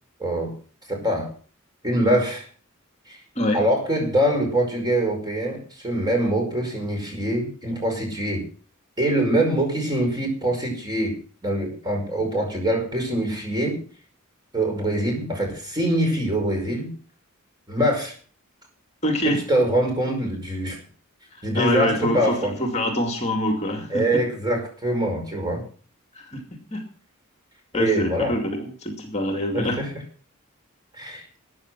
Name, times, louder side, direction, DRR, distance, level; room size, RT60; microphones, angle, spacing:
voice 1, 0.2-0.5 0.9-1.3 1.8-2.5 3.1-3.2 3.5-8.5 9.0-11.1 11.4-13.8 14.5-16.9 17.7-18.1 19.2-20.8 21.4-22.5 23.9-25.6 27.7-28.4 29.5-29.9 30.9-31.3, right 1 dB, 20° right, 2 dB, 5.4 m, -24 dB
voice 2, 19.0-19.4 21.5-24.0 26.1-26.4 26.7-26.8 27.7-29.8, left 1 dB, 30° left, 3 dB, 2.5 m, -25 dB
14.5 x 9.4 x 6.2 m, 0.42 s
head